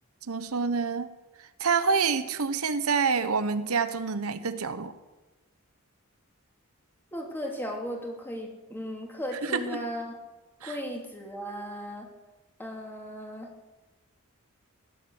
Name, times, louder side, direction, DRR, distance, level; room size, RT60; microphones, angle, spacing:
voice 1, 0.3-1.1 1.6-4.9 9.4-9.8 10.6-10.8, right 5 dB, 75° right, 11 dB, 0.9 m, -27 dB
voice 2, 7.1-10.2 10.6-12.1 12.6-13.5, equal, 10° left, 0 dB, 2.9 m, -36 dB
17.0 x 11.0 x 7.9 m, 1.1 s
head